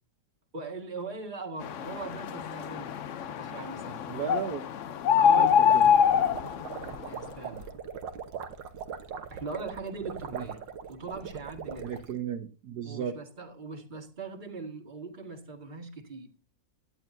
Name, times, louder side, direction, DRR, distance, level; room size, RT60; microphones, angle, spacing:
voice 1, 0.5-3.0 3.3-4.0 5.1-5.6 7.1-7.7 9.3-10.6 10.9-12.0 12.8-16.4, right 3 dB, 25° right, 1.9 m, -40 dB
sound 1, 1.6-7.2, left 8 dB, 60° left, 0.8 m, -25 dB
voice 2, 4.1-4.6 5.4-5.8 10.3-10.4 11.8-13.1, right 8 dB, 65° right, 1.4 m, -35 dB
sound 2, 5.3-12.1, right 7 dB, 85° right, 1.8 m, -40 dB
17.0 x 11.0 x 2.7 m
omnidirectional pair, 1.9 m